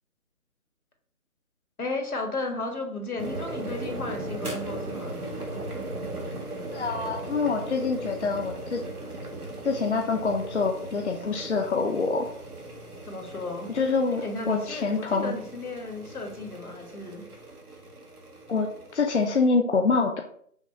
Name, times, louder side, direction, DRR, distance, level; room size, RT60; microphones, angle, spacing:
voice 1, 1.8-5.2 13.0-13.7 14.2-17.2, left 3 dB, 80° left, 3 dB, 1.5 m, -34 dB
sound 1, 3.2-19.5, right 1 dB, 80° right, 1.5 m, -38 dB
voice 2, 6.7-8.8 9.6-12.3 13.7-15.3 18.5-20.2, left 4 dB, 55° left, 3 dB, 0.6 m, -26 dB
5.8 x 2.3 x 4.0 m, 0.62 s
figure-of-eight pair, 160°, 43 cm